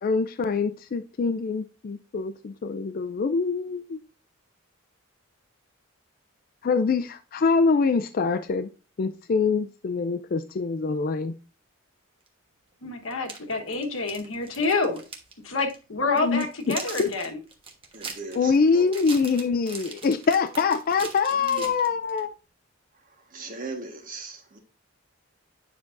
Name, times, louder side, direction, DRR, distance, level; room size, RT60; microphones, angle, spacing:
voice 1, 0.0-4.0 6.6-8.7 9.0-11.3 16.2-17.2 18.3-22.3, left 4 dB, 45° left, 0.4 m, -24 dB
Candy Bar Plastic Wrapper, 12.3-12.4 13.1-15.3 15.6-15.8 16.2-22.2, right 4 dB, 25° right, 1.2 m, -40 dB
voice 2, 12.8-15.0 15.4-17.4, left 3 dB, 70° left, 1.3 m, -27 dB
voice 3, 17.9-18.9 21.4-21.7 23.3-24.6, right 3 dB, 40° right, 1.4 m, -38 dB
9.5 x 6.0 x 2.5 m
head